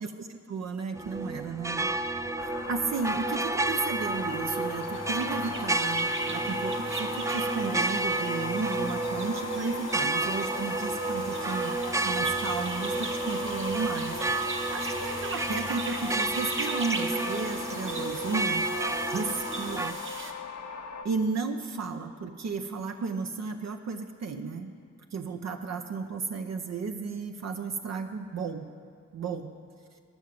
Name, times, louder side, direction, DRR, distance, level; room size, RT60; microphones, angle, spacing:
voice 1, 0.0-1.9 2.2-11.7 12.0-14.2 14.4-18.6 19.1-20.0 21.0-24.7 25.1-28.7 29.1-29.5, right 4 dB, 60° right, 5 dB, 0.7 m, -34 dB
sound 1, 1.0-19.9, right 2 dB, 10° right, 0.4 m, -31 dB
sound 2, 2.4-21.1, left 5 dB, 65° left, 0.8 m, -39 dB
sound 3, 3.5-20.3, right 3 dB, 40° right, 1.2 m, -40 dB
12.5 x 5.8 x 7.6 m, 2.1 s
supercardioid pair, 45°, 30 cm